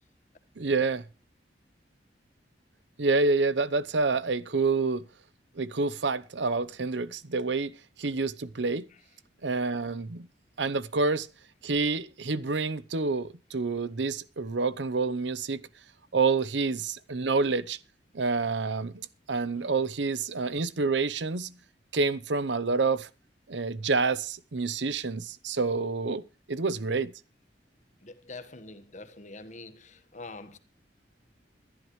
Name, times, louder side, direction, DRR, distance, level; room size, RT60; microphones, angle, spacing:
voice 1, 0.6-1.0 3.0-5.0 5.6-7.7 8.0-8.9 9.4-10.3 10.6-11.3 11.6-15.6 16.1-17.8 18.1-21.5 21.9-23.1 23.5-26.2 26.5-27.1, right 4 dB, 85° right, 0.8 m, -28 dB
voice 2, 28.0-30.6, left 3 dB, 40° left, 1.3 m, -45 dB
21.0 x 11.5 x 3.2 m
head